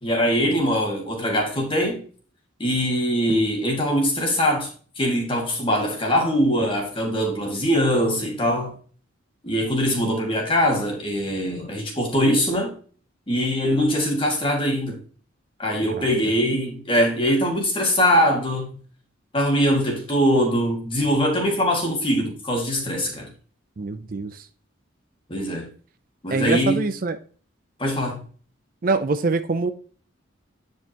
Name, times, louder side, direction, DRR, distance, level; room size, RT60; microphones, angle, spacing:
voice 1, 0.0-2.0 2.6-8.7 9.4-12.7 13.3-15.0 15.6-18.7 19.3-23.3 25.3-25.7 26.2-26.9 27.8-28.2, equal, 25° left, 2.0 m, -22 dB
voice 2, 23.8-24.4 26.3-27.2 28.8-29.7, right 3 dB, 45° right, 0.5 m, -24 dB
9.1 x 5.4 x 2.9 m
head